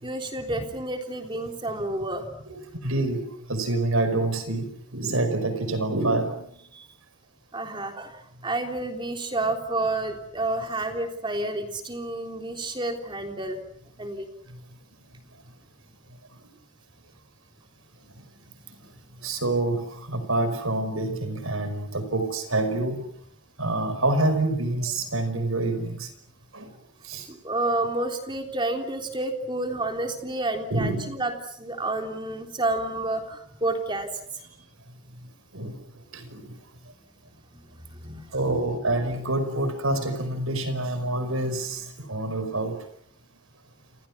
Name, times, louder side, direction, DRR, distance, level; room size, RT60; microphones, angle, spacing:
voice 1, 0.0-2.4 6.7-6.9 7.5-13.6 14.0-14.3 27.3-34.4 37.5-38.6, right 2 dB, 20° right, 4 dB, 3.6 m, -30 dB
voice 2, 2.5-6.5 14.5-14.6 19.2-23.1 23.6-26.1 26.5-26.7 27.0-27.3 30.7-31.1 35.5-35.8 36.1-36.6 38.3-42.8, right 2 dB, 70° right, 10 dB, 5.2 m, -27 dB
30.0 x 28.0 x 6.1 m, 0.69 s
head